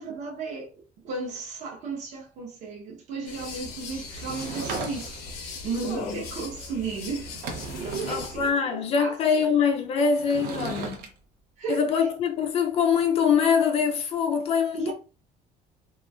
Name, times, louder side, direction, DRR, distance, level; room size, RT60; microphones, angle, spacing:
voice 1, 0.0-7.3 7.7-9.5 10.8-10.9 11.6-11.8 14.7-14.9, right 4 dB, 45° right, 0.7 m, -34 dB
sound 1, 3.2-8.5, left 4 dB, 90° left, 0.8 m, -40 dB
Sliding door / Wood, 4.2-5.4 6.9-7.0 7.2-8.4 10.1-11.1, right 4 dB, 85° right, 0.6 m, -36 dB
voice 2, 5.8-6.2 8.1-11.0 11.7-14.9, left 6 dB, 40° left, 0.4 m, -24 dB
3.0 x 2.4 x 2.3 m
cardioid pair, 180°, 16 cm